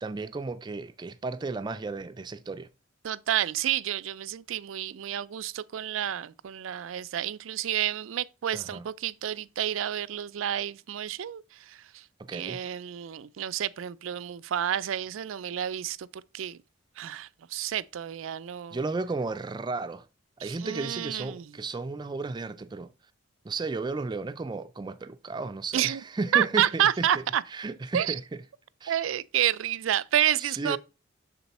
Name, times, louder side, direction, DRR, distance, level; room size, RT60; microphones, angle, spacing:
voice 1, 0.0-2.7 8.5-8.9 12.2-12.6 18.7-20.1 20.4-22.9 23.4-27.1 27.5-28.4 28.8-29.0 30.4-30.8, right 3 dB, 20° right, 0.3 m, -34 dB
voice 2, 3.0-12.0 12.3-16.6 17.0-18.8 20.4-21.5 25.7-26.0 26.3-27.4 27.9-28.2 28.9-30.8, right 10 dB, 90° right, 0.4 m, -29 dB
6.9 x 4.0 x 4.1 m
head